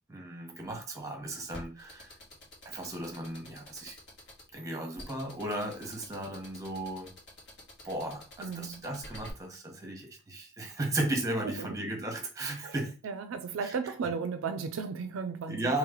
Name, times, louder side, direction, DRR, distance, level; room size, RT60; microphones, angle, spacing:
voice 1, 0.1-2.2 2.6-3.9 4.5-7.1 7.8-13.0 13.6-13.7 15.5-15.8, right 1 dB, 15° right, 1.0 m, -35 dB
sound 1, 1.5-9.3, left 1 dB, 55° left, 1.6 m, -48 dB
voice 2, 8.4-8.9 11.4-11.8 12.6-12.8 13.0-15.8, right 5 dB, 70° right, 0.4 m, -35 dB
3.2 x 3.1 x 3.7 m
head